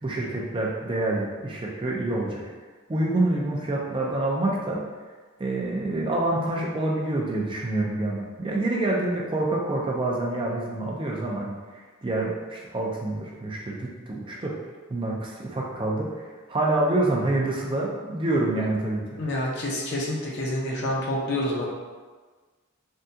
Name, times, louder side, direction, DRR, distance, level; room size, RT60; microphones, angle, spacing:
voice 1, 0.0-2.4 2.9-4.8 5.4-11.6 12.0-14.6 14.9-19.2, right 2 dB, 25° right, -2 dB, 0.4 m, -27 dB
voice 2, 19.1-21.7, left 1 dB, 50° left, -4 dB, 0.7 m, -28 dB
3.5 x 2.3 x 2.7 m, 1.4 s
head